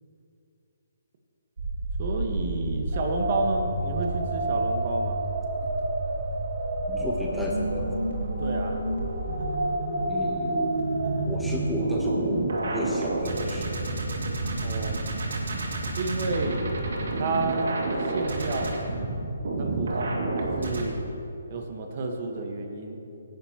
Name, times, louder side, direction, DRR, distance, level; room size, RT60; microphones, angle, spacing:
sound 1, 1.6-20.8, right 2 dB, 70° right, 2.3 m, -29 dB
voice 1, 2.0-5.2 8.4-8.8 14.6-15.0 16.0-16.7 17.1-18.8 19.6-21.0 21.5-23.2, right 3 dB, 45° right, 3 dB, 1.4 m, -31 dB
voice 2, 6.9-8.0 10.1-10.7 11.2-13.8, equal, ahead, -4 dB, 1.1 m, -33 dB
18.0 x 10.5 x 3.0 m, 2.8 s
hypercardioid pair, 150°, 0 cm